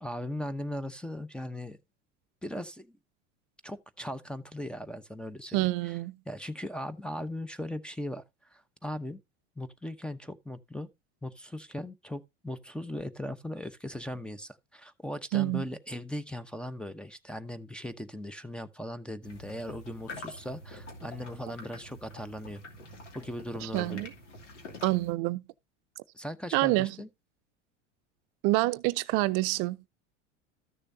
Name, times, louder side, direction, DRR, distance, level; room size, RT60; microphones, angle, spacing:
voice 1, 0.0-1.8 2.4-3.0 3.6-6.0 6.3-8.2 8.5-9.2 9.6-10.9 11.2-22.6 23.1-24.0 26.1-27.1, left 1 dB, 5° left, 0.8 m, -38 dB
voice 2, 5.5-6.1 15.3-15.6 23.6-24.1 24.8-25.4 26.5-26.9 28.4-29.8, right 20 dB, 55° right, 0.6 m, -27 dB
sound 1, 19.2-25.1, left 2 dB, 85° left, 2.7 m, -46 dB
13.5 x 6.7 x 2.7 m
hypercardioid pair, 80°, 36 cm